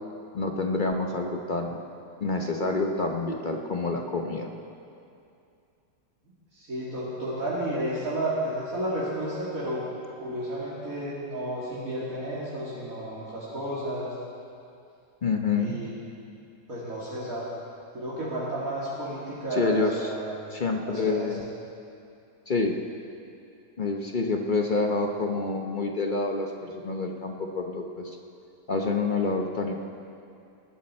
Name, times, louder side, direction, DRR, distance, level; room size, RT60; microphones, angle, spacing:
voice 1, 0.3-1.8 2.2-4.5 15.2-15.8 19.5-20.1 20.5-21.4 22.5-22.8 23.8-28.2 28.7-29.7, left 3 dB, 40° left, 3 dB, 0.7 m, -27 dB
voice 2, 6.5-9.8 10.2-14.1 15.5-15.9 16.7-17.4 17.9-20.3 20.8-21.4, right 1 dB, 55° right, -9 dB, 2.7 m, -32 dB
19.5 x 12.0 x 4.3 m, 2.5 s
omnidirectional pair, 1.8 m